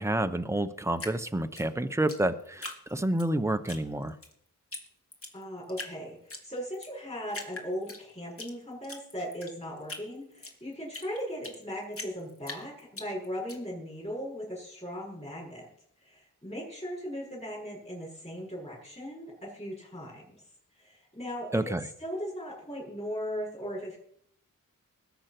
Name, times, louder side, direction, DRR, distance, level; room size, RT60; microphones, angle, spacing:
voice 1, 0.0-4.1 21.5-21.9, right 1 dB, 10° right, 9 dB, 0.9 m, -29 dB
Drip, 1.0-3.3 3.6-4.3 4.7-4.8 5.1-5.9 6.3-6.9 7.3-8.5 8.8-11.6 11.9-13.6, left 2 dB, 40° left, 2.8 m, -41 dB
voice 2, 5.3-15.7 16.0-20.4 20.7-24.0, equal, 20° left, -5 dB, 6.3 m, -38 dB
20.0 x 8.0 x 6.1 m, 0.69 s
wide cardioid pair, 80°, 34 cm